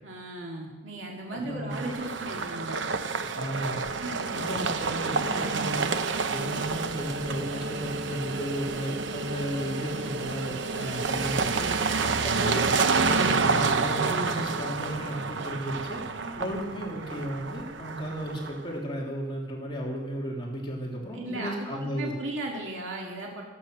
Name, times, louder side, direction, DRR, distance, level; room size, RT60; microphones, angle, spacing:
voice 1, 0.0-2.8 4.0-4.4 16.1-16.5 21.1-23.4, right 1 dB, 85° right, -1 dB, 2.3 m, -36 dB
voice 2, 1.3-1.9 3.3-3.9 4.3-5.9 6.3-12.7 12.9-16.0 16.4-22.1, equal, 25° left, -3 dB, 2.7 m, -34 dB
sound 1, 1.7-18.7, right 4 dB, 70° right, 0.9 m, -29 dB
24.5 x 8.6 x 6.2 m, 1.3 s
head